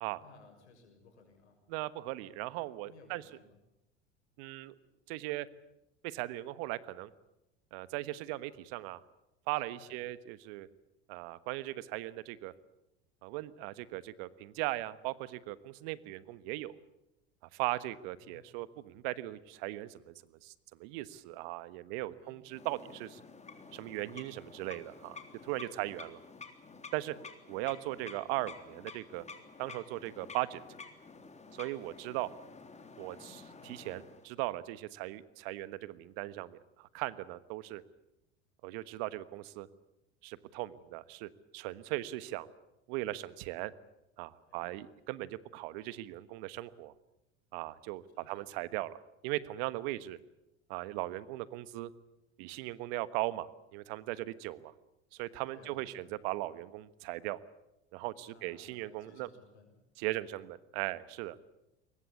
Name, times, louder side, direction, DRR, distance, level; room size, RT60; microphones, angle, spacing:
voice 1, 0.2-1.6 2.8-3.6 9.7-10.0 18.2-18.6 21.9-23.1 25.7-25.9 31.8-32.0 44.5-44.8 48.1-48.6 55.5-56.1 58.2-59.7, left 4 dB, 85° left, 4 dB, 6.8 m, -60 dB
voice 2, 1.7-3.2 4.4-4.7 5.1-5.5 6.0-7.1 7.7-9.0 9.5-10.7 11.1-12.5 13.2-16.8 17.5-20.1 20.4-20.5 20.8-23.2 23.7-25.2 25.4-26.2 26.9-27.2 27.5-29.2 29.6-30.6 31.5-32.3 33.0-37.8 38.6-39.7 40.2-42.5 42.9-43.7 44.2-46.9 47.5-49.0 49.2-50.2 50.7-51.9 52.4-54.7 55.1-57.4 57.9-59.3 60.0-61.4, right 17 dB, 65° right, 16 dB, 1.3 m, -38 dB
sound 1, 22.5-34.3, left 4 dB, 20° left, 3.5 m, -51 dB
22.5 x 20.0 x 8.5 m, 0.90 s
hypercardioid pair, 85°, 33 cm